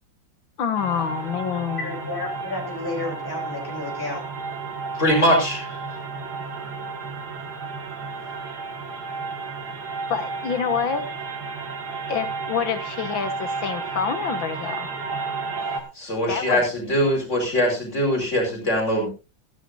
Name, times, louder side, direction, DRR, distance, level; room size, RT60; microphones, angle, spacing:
voice 1, 0.6-1.9 10.1-11.1 12.1-14.9 16.3-16.6, left 7 dB, 80° left, 9 dB, 2.3 m, -27 dB
sound 1, 0.8-15.8, right 4 dB, 55° right, 2.7 m, -32 dB
voice 2, 1.8-4.2, left 2 dB, 10° left, -1 dB, 4.2 m, -31 dB
voice 3, 5.0-5.8 16.0-19.1, equal, 35° left, 0 dB, 5.4 m, -22 dB
17.0 x 14.5 x 2.7 m, 0.29 s
omnidirectional pair, 2.1 m